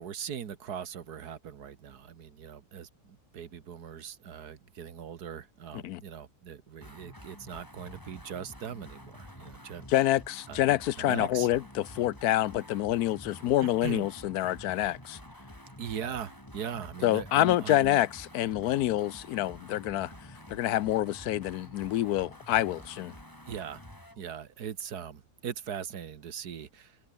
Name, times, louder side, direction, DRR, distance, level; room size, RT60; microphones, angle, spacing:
voice 1, 0.0-10.1 10.5-10.6 11.0-11.5 13.6-14.1 15.8-18.0 23.5-23.8 24.2-27.0, right 8 dB, 85° right, 1.9 m, -40 dB
sound 1, 6.8-24.2, left 1 dB, 10° left, 5.0 m, -49 dB
voice 2, 9.9-15.2 17.0-18.1 18.3-20.1 20.5-23.1, left 14 dB, 75° left, 1.1 m, -27 dB
open air
omnidirectional pair, 1.6 m